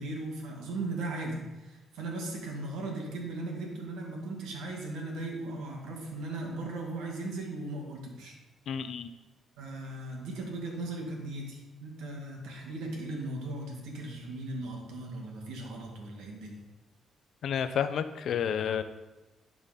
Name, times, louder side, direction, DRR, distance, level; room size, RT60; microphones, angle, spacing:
voice 1, 0.0-8.3 9.6-16.6, right 2 dB, 90° right, 0 dB, 1.7 m, -37 dB
voice 2, 8.7-9.1 17.4-18.8, left 8 dB, 65° left, 11 dB, 0.5 m, -30 dB
11.0 x 4.0 x 4.0 m, 1.1 s
cardioid pair, 90°, 0 cm